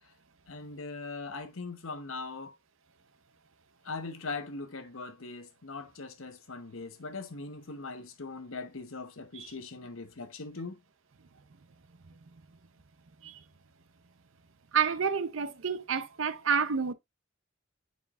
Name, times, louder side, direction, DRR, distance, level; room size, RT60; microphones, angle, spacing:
voice 1, 0.5-2.5 3.8-10.8, left 3 dB, 85° left, 1.1 m, -40 dB
voice 2, 14.7-16.9, right 6 dB, 70° right, 0.7 m, -29 dB
9.4 x 4.5 x 2.4 m
head